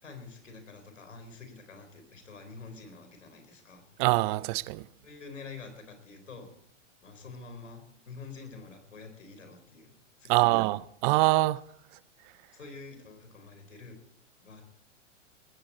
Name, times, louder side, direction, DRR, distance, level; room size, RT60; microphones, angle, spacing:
voice 1, 0.0-3.9 5.0-6.5 7.0-9.9 10.2-10.7 12.5-14.0 14.4-14.6, left 4 dB, 90° left, 4.2 m, -47 dB
voice 2, 4.0-4.8 10.3-11.6, right 20 dB, 40° right, 0.6 m, -24 dB
19.0 x 15.0 x 4.2 m
hypercardioid pair, 110°, 37 cm